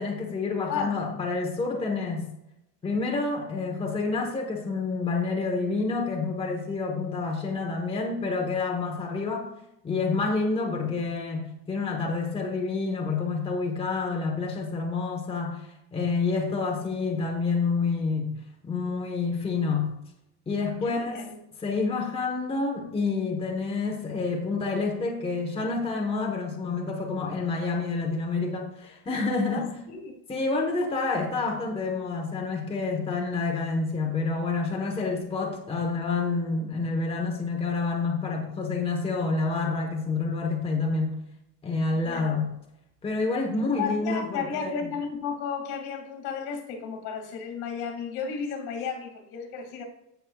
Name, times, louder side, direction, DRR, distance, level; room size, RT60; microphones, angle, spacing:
voice 1, 0.0-2.3 2.8-9.5 9.8-18.3 18.6-19.9 20.5-21.2 21.6-29.7 30.3-41.2 41.6-42.5 43.0-44.9, left 4 dB, 15° left, 1 dB, 1.2 m, -28 dB
voice 2, 0.7-1.0 20.8-21.3 29.5-30.1 41.9-42.4 43.8-49.8, left 6 dB, 70° left, 4 dB, 2.4 m, -33 dB
16.0 x 6.4 x 2.4 m, 0.85 s
cardioid pair, 170°, 38 cm